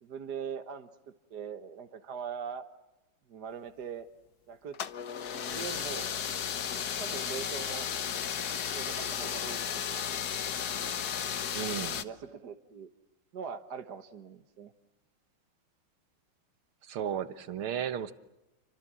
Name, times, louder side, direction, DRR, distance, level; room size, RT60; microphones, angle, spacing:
voice 1, 0.0-0.9 1.3-2.6 3.3-4.1 4.5-4.8 5.5-6.1 7.0-7.8 8.7-10.0 11.9-12.9 13.3-14.7, right 7 dB, 55° right, 1.7 m, -41 dB
sound 1, 4.7-12.0, left 8 dB, 55° left, 1.5 m, -34 dB
voice 2, 11.5-12.0 16.8-18.1, right 9 dB, 85° right, 2.1 m, -34 dB
30.0 x 24.5 x 7.6 m
omnidirectional pair, 2.3 m